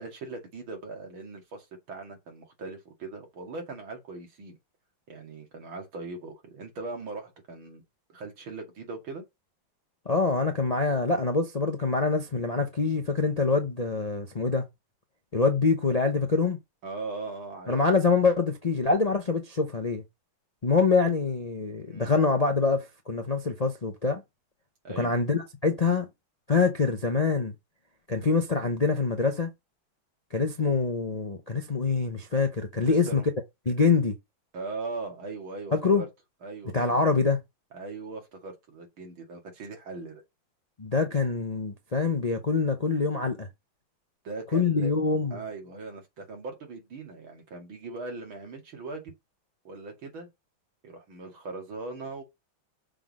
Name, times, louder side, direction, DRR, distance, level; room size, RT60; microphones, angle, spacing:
voice 1, 0.0-4.6 5.1-7.8 8.1-9.2 16.8-18.0 21.9-22.1 24.8-25.1 32.8-33.3 34.5-36.1 36.4-37.0 37.7-40.2 44.2-44.9 45.3-49.1 49.6-50.3 50.8-52.2, right 3 dB, 90° right, 3.1 m, -39 dB
voice 2, 10.1-14.7 15.3-16.6 17.7-20.0 20.6-24.2 25.0-26.1 26.5-27.5 28.1-29.5 30.3-33.2 33.7-34.2 35.7-36.0 36.7-37.4 40.8-43.5 44.5-45.4, left 4 dB, 40° left, 0.5 m, -25 dB
6.6 x 3.8 x 6.3 m
omnidirectional pair, 2.1 m